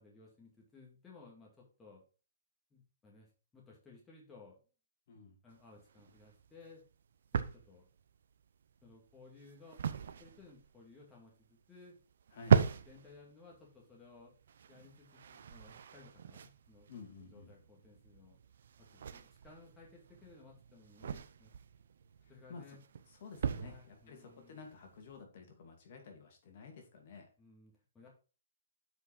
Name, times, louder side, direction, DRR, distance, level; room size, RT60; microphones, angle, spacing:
voice 1, 0.0-2.0 2.7-4.6 5.4-6.8 7.3-7.9 8.8-9.8 10.2-12.0 12.6-14.3 14.7-16.9 17.3-18.4 18.8-21.5 22.3-22.8 23.6-24.6 27.4-28.1, left 3 dB, 10° left, -3 dB, 2.1 m, -58 dB
voice 2, 5.1-5.4 12.3-12.6 16.9-17.5 22.2-22.8 23.1-27.3, left 4 dB, 50° left, 3 dB, 2.5 m, -52 dB
sound 1, 5.5-25.2, right 7 dB, 65° right, 0.8 m, -38 dB
8.0 x 5.1 x 4.4 m, 0.34 s
hypercardioid pair, 155°, 0 cm